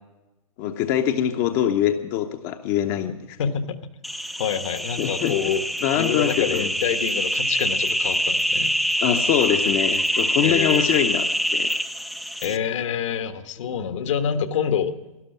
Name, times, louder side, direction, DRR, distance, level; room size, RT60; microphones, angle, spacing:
voice 1, 0.6-3.4 5.0-5.4 5.8-6.7 9.0-11.7, left 10 dB, 35° left, 6 dB, 0.8 m, -23 dB
voice 2, 3.4-3.8 4.4-5.6 5.9-8.7 10.4-10.9 12.4-14.9, left 8 dB, 60° left, 10 dB, 1.3 m, -26 dB
sound 1, 4.0-12.6, equal, ahead, 0.5 m, -25 dB
12.5 x 11.5 x 9.1 m, 1.1 s
hypercardioid pair, 130°, 18 cm